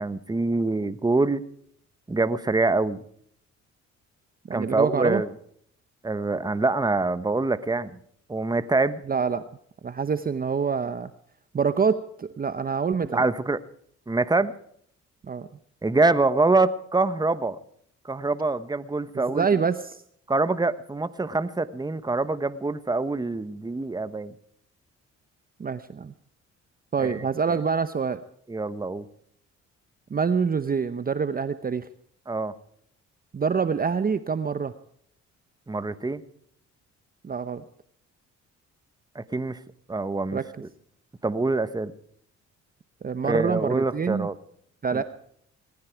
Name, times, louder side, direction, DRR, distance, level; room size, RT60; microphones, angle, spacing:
voice 1, 0.0-1.4 2.1-3.0 4.5-5.3 6.0-7.9 8.3-9.0 13.0-13.6 14.1-14.5 15.8-17.6 18.1-19.5 20.3-24.3 27.0-27.2 27.5-27.6 28.5-29.1 32.3-32.5 35.7-36.2 39.1-39.6 39.9-40.4 41.2-41.9 43.2-44.3 44.9-45.0, right 3 dB, 15° right, 13 dB, 1.1 m, -25 dB
voice 2, 4.5-5.2 9.1-9.5 9.8-11.1 11.5-13.2 15.3-15.5 19.1-20.0 25.6-26.1 26.9-28.2 30.1-31.9 33.3-34.7 37.2-37.6 40.3-40.4 43.0-44.3 44.8-45.0, right 6 dB, 30° right, 12 dB, 0.8 m, -26 dB
19.5 x 15.0 x 4.6 m, 0.65 s
cardioid pair, 90°, 30 cm